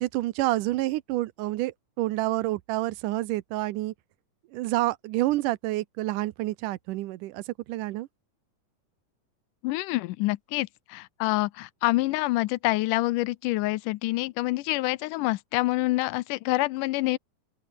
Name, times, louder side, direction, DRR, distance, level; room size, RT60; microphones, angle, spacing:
voice 1, 0.0-3.9 4.5-8.1, right 17 dB, 85° right, 2.3 m, -28 dB
voice 2, 9.6-17.2, left 19 dB, 85° left, 2.2 m, -27 dB
omnidirectional pair, 3.6 m